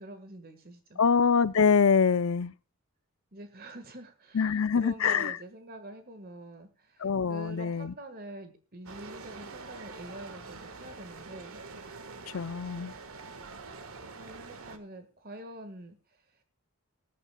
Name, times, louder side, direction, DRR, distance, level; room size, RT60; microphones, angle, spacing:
voice 1, 0.0-1.0 3.3-11.6 14.1-16.4, right 1 dB, 45° right, 1.6 m, -46 dB
voice 2, 1.0-2.5 4.3-5.4 7.0-7.9 12.3-12.9, left 6 dB, 70° left, 0.6 m, -24 dB
sound 1, 8.9-14.8, right 4 dB, 70° right, 1.5 m, -45 dB
20.0 x 11.0 x 2.3 m
head